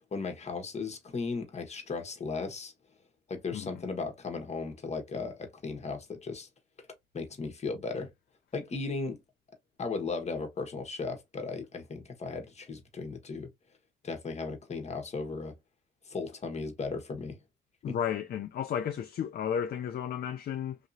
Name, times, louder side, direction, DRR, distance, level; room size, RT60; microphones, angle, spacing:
voice 1, 0.1-2.7 3.3-6.5 7.1-8.1 8.5-9.2 9.8-13.5 14.0-15.5 16.1-17.4 17.9-18.0, left 4 dB, 35° left, 1.2 m, -36 dB
voice 2, 17.8-20.8, left 8 dB, 50° left, 0.5 m, -33 dB
3.0 x 2.7 x 2.6 m
cardioid pair, 90°, 20 cm